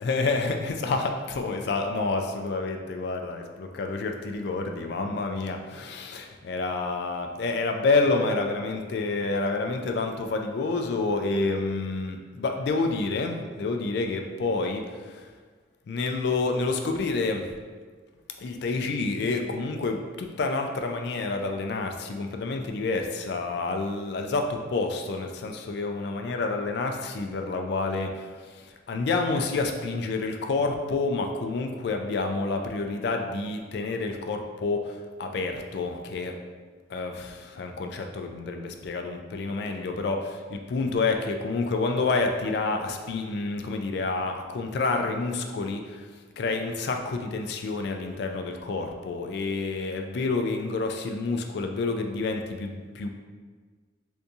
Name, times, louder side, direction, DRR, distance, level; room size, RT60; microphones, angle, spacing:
voice 1, 0.0-15.3 15.9-17.5 18.4-36.3 36.9-46.1 46.4-53.1, left 3 dB, 55° left, 4 dB, 0.3 m, -28 dB
2.7 x 2.6 x 3.4 m, 1.5 s
head